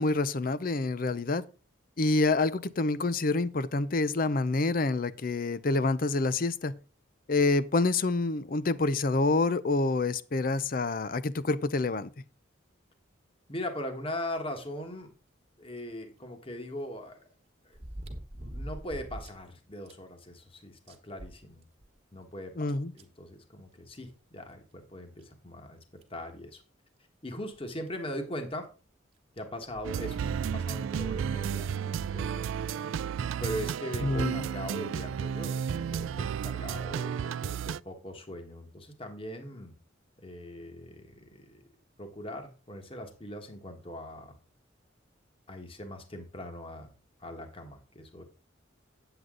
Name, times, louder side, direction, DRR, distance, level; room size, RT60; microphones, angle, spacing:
voice 1, 0.0-1.4 2.0-6.7 7.3-12.1 22.6-22.9 34.0-34.5, left 3 dB, 45° left, 0.5 m, -27 dB
voice 2, 13.5-15.1 15.6-17.3 17.6-17.8 18.3-21.6 22.1-22.7 22.9-25.8 26.1-26.6 27.2-28.7 29.4-32.5 33.4-39.7 40.2-41.6 42.0-44.4 45.5-46.9 47.2-48.2, left 1 dB, 30° left, 1.4 m, -40 dB
sound 1, 15.8-15.9 17.7-19.4 19.9-20.0 20.4-20.5 20.9-22.0 23.0-23.1 24.5-24.6 25.2-25.3 26.0-26.2 27.6-27.7 27.9-28.0 29.7-30.0 30.7-30.8, right 1 dB, 30° right, 1.4 m, -42 dB
sound 2, 29.8-37.8, right 7 dB, 85° right, 0.3 m, -32 dB
9.5 x 8.0 x 3.7 m
head